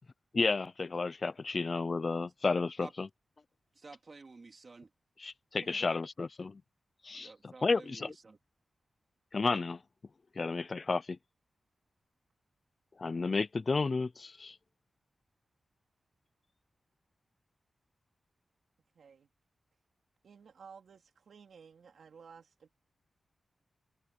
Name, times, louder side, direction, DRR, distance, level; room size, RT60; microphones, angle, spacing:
voice 1, 0.3-3.1 5.2-6.5 7.0-8.1 9.3-9.8 10.4-11.2 13.0-14.6, left 4 dB, 40° left, 0.5 m, -32 dB
voice 2, 3.8-4.9 7.2-8.4, right 3 dB, 40° right, 2.6 m, -51 dB
voice 3, 5.5-6.0 18.9-19.3 20.2-22.7, right 6 dB, 80° right, 3.5 m, -55 dB
wide cardioid pair, 105°, 0 cm